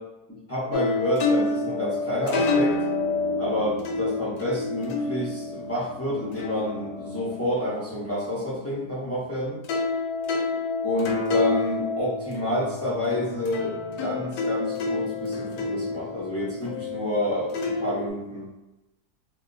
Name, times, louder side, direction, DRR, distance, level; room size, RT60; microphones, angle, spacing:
voice 1, 0.5-2.8 3.4-9.6 10.8-18.5, left 1 dB, 25° left, -8 dB, 0.3 m, -29 dB
sound 1, 0.7-9.3 9.6-18.1, left 3 dB, 70° left, 1.0 m, -29 dB
2.8 x 2.3 x 3.8 m, 0.99 s
omnidirectional pair, 1.8 m